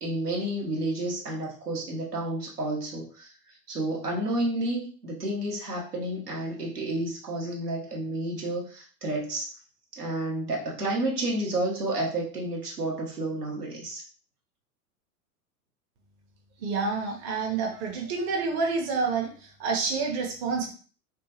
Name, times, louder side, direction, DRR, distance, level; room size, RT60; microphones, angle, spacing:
voice 1, 0.0-9.5 9.9-14.0, right 1 dB, 85° right, -2 dB, 1.1 m, -31 dB
voice 2, 16.6-19.3 19.6-20.7, right 4 dB, 45° right, 1 dB, 1.0 m, -28 dB
3.6 x 2.3 x 2.9 m, 0.40 s
figure-of-eight pair, 95°, 45 cm